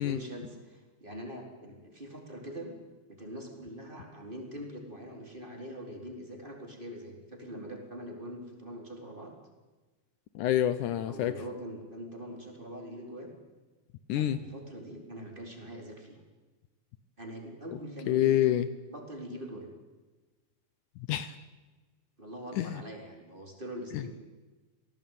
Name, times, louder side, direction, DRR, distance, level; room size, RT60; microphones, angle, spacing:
voice 1, 0.0-2.8 3.1-9.3 10.8-13.3 14.1-16.2 17.2-18.6 18.9-19.7 22.2-24.1, equal, 15° right, 1 dB, 4.2 m, -43 dB
voice 2, 10.4-11.3 14.1-14.4 18.1-18.7 21.1-21.3 22.6-22.7, left 12 dB, 75° left, 13 dB, 2.3 m, -26 dB
27.0 x 18.0 x 9.2 m, 1.2 s
omnidirectional pair, 3.8 m